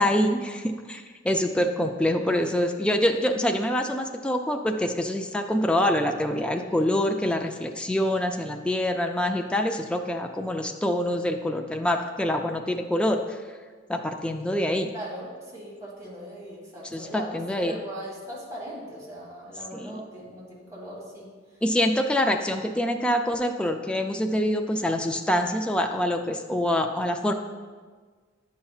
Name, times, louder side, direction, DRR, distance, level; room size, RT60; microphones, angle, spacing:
voice 1, 0.0-13.4 13.9-14.9 16.8-17.8 19.7-20.0 21.6-27.3, left 1 dB, 5° left, 4 dB, 0.3 m, -25 dB
voice 2, 14.9-21.3, right 1 dB, 15° right, -6 dB, 1.8 m, -39 dB
9.5 x 5.6 x 2.4 m, 1.5 s
head